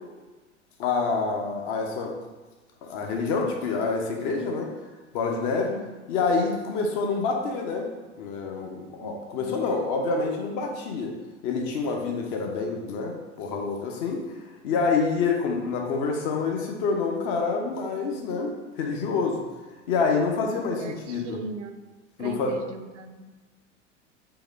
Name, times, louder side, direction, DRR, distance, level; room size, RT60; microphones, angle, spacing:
voice 1, 0.8-2.1 2.9-4.7 5.1-5.8 6.1-7.9 8.2-11.1 11.4-14.2 14.6-19.4 19.9-21.4 22.2-22.6, left 4 dB, 45° left, 2 dB, 0.8 m, -27 dB
voice 2, 9.0-9.7 20.8-21.8 22.2-23.3, right 4 dB, 70° right, 7 dB, 0.5 m, -39 dB
3.9 x 2.9 x 3.9 m, 1.3 s
figure-of-eight pair, 90°, 37 cm